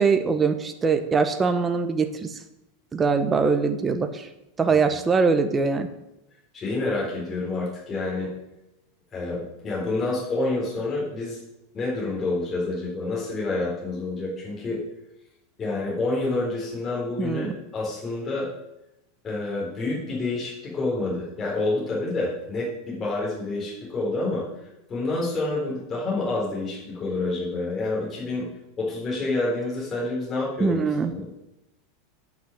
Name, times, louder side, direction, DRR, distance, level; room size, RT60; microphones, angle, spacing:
voice 1, 0.0-2.4 2.9-4.3 4.6-5.9 17.2-17.5 30.6-31.1, right 4 dB, 15° right, 7 dB, 0.9 m, -22 dB
voice 2, 6.5-8.3 9.1-11.4 11.7-14.8 15.6-18.5 19.2-24.5 24.9-28.5 28.8-30.8 31.1-31.3, left 2 dB, 20° left, -5 dB, 3.9 m, -28 dB
9.4 x 5.9 x 7.6 m, 0.91 s
supercardioid pair, 150°, 0 cm